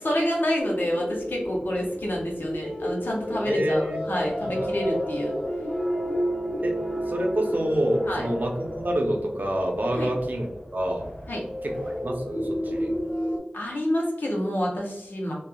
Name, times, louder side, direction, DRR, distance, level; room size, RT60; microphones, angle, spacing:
voice 1, 0.0-5.3 8.1-8.2 9.9-10.1 11.3-11.4 13.5-15.3, equal, 90° left, -2 dB, 0.8 m, -28 dB
sound 1, 0.6-10.2 11.3-13.4, equal, 45° left, 0.8 m, -31 dB
Wind, 1.1-13.7, equal, 60° left, 1.1 m, -45 dB
voice 2, 3.5-4.7 6.6-6.7 7.1-11.1 11.6-12.9, right 1 dB, 65° right, 1 dB, 0.6 m, -27 dB
sound 2, 4.1-9.0, right 1 dB, 10° right, 0.6 m, -40 dB
3.0 x 2.3 x 2.2 m, 0.84 s
wide cardioid pair, 45°, 3 cm